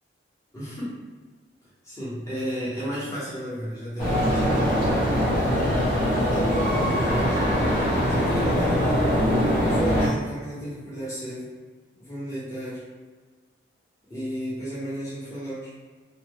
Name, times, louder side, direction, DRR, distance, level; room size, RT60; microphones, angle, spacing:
voice 1, 0.5-1.0 1.8-4.7 6.3-7.4 8.2-8.9 9.6-11.5 12.0-12.8 14.1-15.7, equal, 15° left, -10 dB, 0.9 m, -33 dB
sound 1, 4.0-10.1, equal, 45° left, 1.0 m, -22 dB
2.9 x 2.2 x 3.4 m, 1.4 s
head